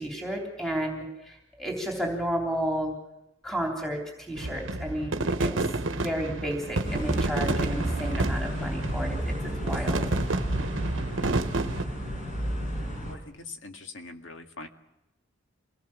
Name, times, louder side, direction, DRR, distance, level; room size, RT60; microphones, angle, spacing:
voice 1, 0.0-2.9 3.4-10.0, equal, ahead, -1 dB, 3.4 m, -32 dB
sound 1, 4.4-11.8, right 2 dB, 70° right, 1.0 m, -30 dB
sound 2, 6.8-13.1, right 1 dB, 40° left, 5.5 m, -31 dB
voice 2, 13.0-14.7, left 3 dB, 70° left, 4 dB, 2.1 m, -43 dB
26.0 x 18.5 x 7.4 m, 0.93 s
head